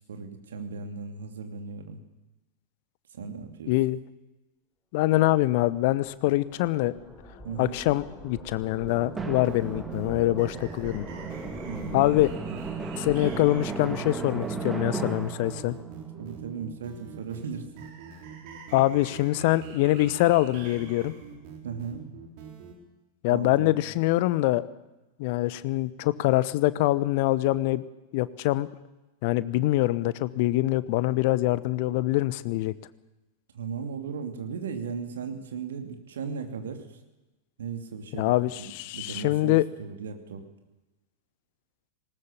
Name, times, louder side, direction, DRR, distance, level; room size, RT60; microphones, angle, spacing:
voice 1, 0.1-2.0 3.1-3.7 7.4-7.8 11.6-12.2 15.6-15.9 16.2-17.7 21.6-22.0 23.3-23.8 33.5-36.9 37.6-40.5, right 5 dB, 65° right, 6 dB, 2.7 m, -37 dB
voice 2, 3.7-4.0 4.9-6.9 7.6-11.1 11.9-12.3 13.0-15.8 18.7-21.1 23.2-24.6 25.2-27.8 28.1-28.7 29.2-32.7 38.2-39.7, left 17 dB, 50° left, 17 dB, 0.9 m, -24 dB
sound 1, 6.0-14.8, equal, ahead, 5.5 m, -45 dB
sound 2, 8.6-22.7, right 6 dB, 45° right, 4.0 m, -44 dB
Drum, 9.2-17.4, right 4 dB, 15° right, 2.0 m, -36 dB
19.5 x 19.0 x 7.2 m, 1.1 s
figure-of-eight pair, 90°, 0 cm